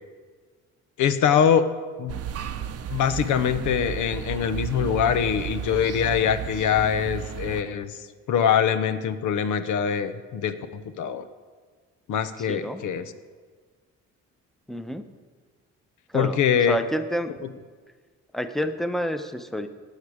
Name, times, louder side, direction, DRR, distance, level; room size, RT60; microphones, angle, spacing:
voice 1, 1.0-1.7 2.0-2.2 2.9-11.2 12.1-13.1 16.1-16.8 17.4-17.5, left 8 dB, 80° left, 11 dB, 0.8 m, -23 dB
sound 1, 2.1-7.6, right 8 dB, 55° right, 0.7 m, -33 dB
voice 2, 12.4-12.8 14.7-15.1 16.1-16.4 16.7-17.3 18.3-19.7, equal, ahead, 8 dB, 0.8 m, -28 dB
18.0 x 6.6 x 4.9 m, 1.5 s
cardioid pair, 90°, 30 cm